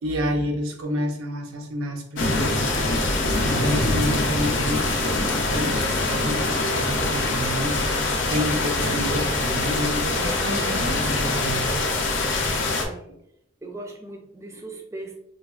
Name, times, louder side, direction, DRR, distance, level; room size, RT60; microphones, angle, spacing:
voice 1, 0.0-2.7 3.4-11.8, equal, 80° right, 4 dB, 0.6 m, -29 dB
sound 1, 2.2-12.8, left 2 dB, 60° left, 0.5 m, -24 dB
voice 2, 12.7-13.1 13.6-15.2, right 2 dB, 15° right, 2 dB, 0.3 m, -39 dB
3.3 x 2.3 x 2.3 m, 0.78 s
head